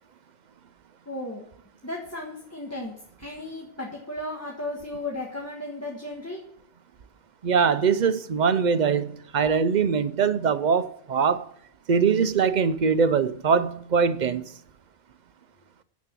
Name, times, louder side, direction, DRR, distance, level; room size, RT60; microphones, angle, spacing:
voice 1, 1.0-1.4 1.8-6.4, left 2 dB, 15° left, 1.6 m, -35 dB
voice 2, 7.4-11.5 11.9-14.5, right 6 dB, 50° right, 0.7 m, -22 dB
10.5 x 7.5 x 7.4 m
omnidirectional pair, 1.0 m